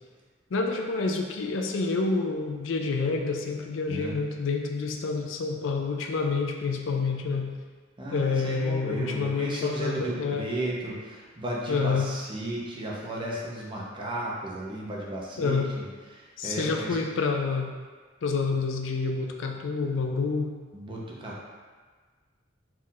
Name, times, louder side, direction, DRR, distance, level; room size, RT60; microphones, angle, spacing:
voice 1, 0.5-7.5 8.1-10.5 11.7-12.1 15.4-15.7 16.4-17.7 18.2-20.5, left 4 dB, 75° left, 2 dB, 0.4 m, -28 dB
voice 2, 8.0-17.0 20.7-21.4, right 1 dB, 25° right, -4 dB, 0.7 m, -34 dB
4.4 x 2.5 x 3.8 m, 1.5 s
head